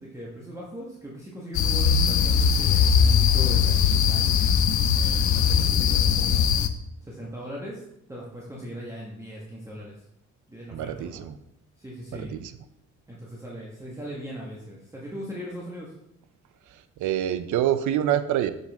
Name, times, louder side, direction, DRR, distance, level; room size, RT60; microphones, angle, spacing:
voice 1, 0.0-4.3 4.9-6.5 7.1-7.8 8.1-9.9 10.5-11.2 11.8-12.3 13.1-15.9, equal, 10° right, -4 dB, 1.4 m, -39 dB
sound 1, 1.5-6.7, left 7 dB, 70° left, 0.6 m, -20 dB
voice 2, 10.7-11.4 12.1-12.5 17.0-18.5, right 11 dB, 75° right, 12 dB, 0.6 m, -26 dB
6.9 x 5.2 x 3.5 m, 0.82 s
cardioid pair, 90°, 30 cm